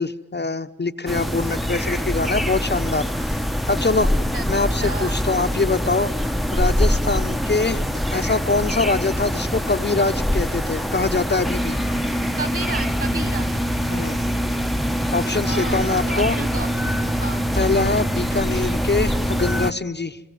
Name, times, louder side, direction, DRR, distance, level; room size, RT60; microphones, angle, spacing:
voice 1, 0.0-3.4 3.7-4.1 4.5-7.8 8.1-11.8 13.9-14.2 15.1-16.4 17.5-20.2, left 3 dB, 30° left, 6 dB, 1.0 m, -23 dB
sound 1, 1.1-19.7, equal, ahead, 0.9 m, -24 dB
voice 2, 4.8-5.2 12.3-13.5 15.4-17.5, right 3 dB, 40° right, 10 dB, 2.6 m, -32 dB
26.5 x 21.5 x 9.4 m, 1.1 s
cardioid pair, 45°, 34 cm